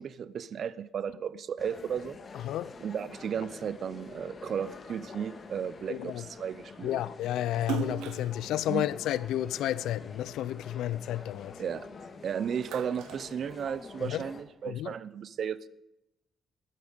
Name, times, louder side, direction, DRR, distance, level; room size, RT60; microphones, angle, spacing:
voice 1, 0.0-2.2 2.8-7.0 8.7-8.9 11.6-11.9 12.2-15.7, right 7 dB, 55° right, 0.6 m, -34 dB
sound 1, 1.6-14.4, left 4 dB, 40° left, 1.7 m, -48 dB
voice 2, 5.9-6.2 6.8-11.5 14.0-14.2 14.7-14.9, left 12 dB, 85° left, 0.4 m, -31 dB
Splash splatter, 7.6-10.1 10.6-12.1 12.4-14.1, right 10 dB, 90° right, 0.9 m, -39 dB
14.0 x 12.0 x 5.1 m
cardioid pair, 90°, 0 cm